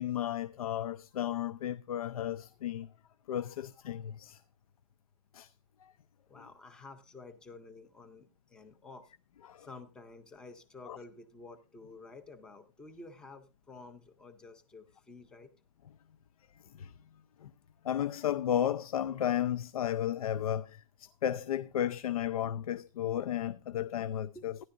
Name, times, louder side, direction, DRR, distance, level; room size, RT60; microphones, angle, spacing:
voice 1, 0.0-2.9 3.3-4.4 5.3-5.5 5.8-5.9 9.4-9.7 10.9-11.0 16.7-16.9 17.4-17.5 17.8-24.6, left 10 dB, 80° left, 0.6 m, -33 dB
voice 2, 6.3-9.1 9.6-15.5 24.3-24.4, left 3 dB, 5° left, 0.6 m, -51 dB
15.5 x 10.5 x 2.6 m
hypercardioid pair, 180°, 18 cm